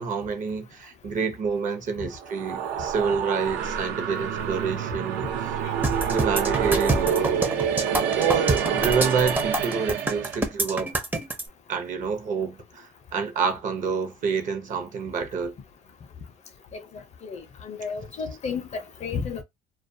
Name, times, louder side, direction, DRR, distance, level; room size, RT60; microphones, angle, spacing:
voice 1, 0.0-5.3 6.1-7.4 8.1-10.9 11.7-15.5, right 5 dB, 50° right, 0.7 m, -28 dB
sound 1, 2.1-10.4, right 8 dB, 85° right, 0.6 m, -27 dB
sound 2, 5.8-11.4, right 2 dB, 10° right, 0.5 m, -27 dB
voice 2, 16.7-19.4, left 5 dB, 40° left, 0.5 m, -33 dB
2.3 x 2.2 x 2.6 m
cardioid pair, 110°, 17 cm